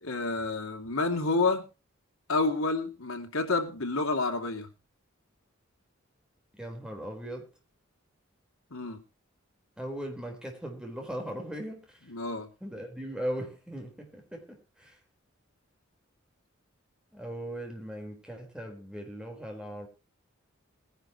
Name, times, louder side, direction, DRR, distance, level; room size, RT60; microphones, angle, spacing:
voice 1, 0.0-1.7 2.3-4.7 8.7-9.0 12.1-12.5, left 3 dB, 90° left, 2.7 m, -29 dB
voice 2, 6.5-7.5 9.8-12.0 12.6-14.9 17.1-19.9, equal, 5° right, 4.3 m, -38 dB
21.0 x 11.0 x 3.0 m
head